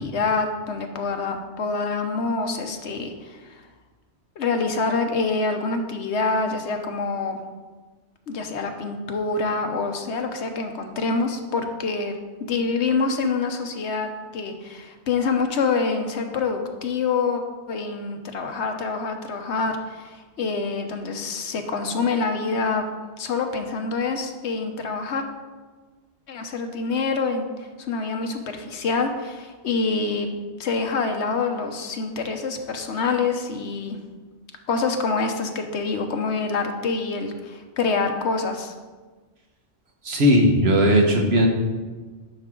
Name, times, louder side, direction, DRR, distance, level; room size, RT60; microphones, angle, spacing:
voice 1, 0.0-3.6 4.4-7.4 8.3-12.1 12.4-17.4 17.7-22.9 23.2-25.2 26.3-27.5 27.8-30.3 30.6-34.0 34.7-38.7, left 4 dB, 75° left, 5 dB, 1.1 m, -26 dB
voice 2, 40.0-41.5, equal, 65° right, 1 dB, 1.5 m, -17 dB
10.5 x 6.1 x 3.8 m, 1.3 s
omnidirectional pair, 1.2 m